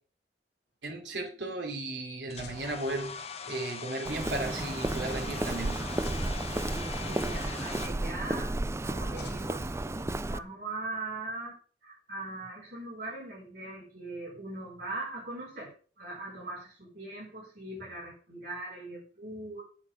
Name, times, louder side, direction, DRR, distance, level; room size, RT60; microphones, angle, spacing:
voice 1, 0.8-3.2 3.5-5.9, right 2 dB, 80° right, 3.1 m, -35 dB
sound 1, 2.3-3.6 6.0-7.3 9.2-10.5, left 3 dB, 65° left, 1.5 m, -50 dB
Domestic sounds home sounds, 2.3-7.9, left 5 dB, 35° left, 1.4 m, -42 dB
Walk footsteps, 4.1-10.4, right 2 dB, 15° right, 0.4 m, -33 dB
voice 2, 6.6-8.6 8.8-11.5 11.8-19.6, right 2 dB, 50° right, 6.4 m, -40 dB
9.7 x 7.5 x 6.5 m
head